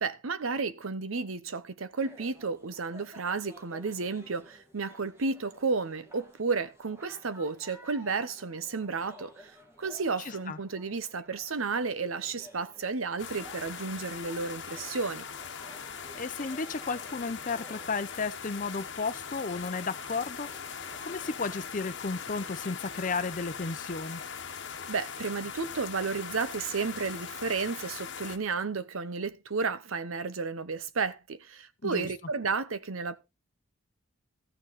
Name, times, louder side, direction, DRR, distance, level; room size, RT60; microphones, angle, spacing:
voice 1, 0.0-9.5 9.8-15.2 24.9-33.2, right 4 dB, 85° right, 0.8 m, -32 dB
sound 1, 2.0-21.7, right 1 dB, 15° right, 1.9 m, -54 dB
voice 2, 10.2-10.6 16.1-20.5 21.1-24.2 31.8-32.1, left 4 dB, 40° left, 0.6 m, -33 dB
sound 2, 13.2-28.4, left 6 dB, 55° left, 1.1 m, -41 dB
14.0 x 6.3 x 4.1 m
head